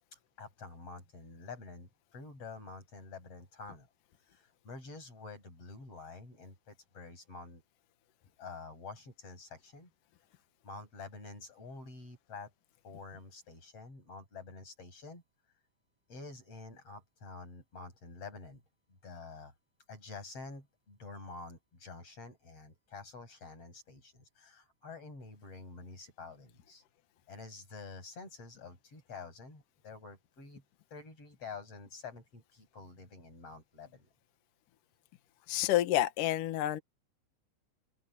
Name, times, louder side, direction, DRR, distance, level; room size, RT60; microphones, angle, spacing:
voice 1, 0.1-3.9 4.3-7.6 8.4-9.9 10.6-12.5 12.8-15.2 16.1-18.6 19.0-19.5 19.9-26.8 27.3-30.6 30.9-34.1, left 4 dB, 30° left, 8.0 m, -48 dB
voice 2, 35.5-36.8, left 14 dB, 60° left, 2.4 m, -29 dB
open air
omnidirectional pair, 5.4 m